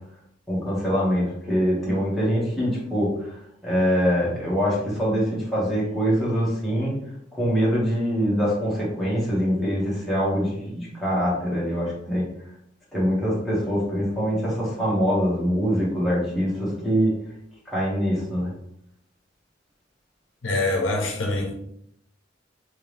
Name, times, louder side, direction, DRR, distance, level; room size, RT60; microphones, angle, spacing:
voice 1, 0.5-6.9 7.3-12.3 12.9-17.1 17.6-18.5, equal, ahead, 1.5 m, -24 dB
voice 2, 20.4-21.5, left 2 dB, 75° left, 0.8 m, -24 dB
3.6 x 3.1 x 3.3 m
head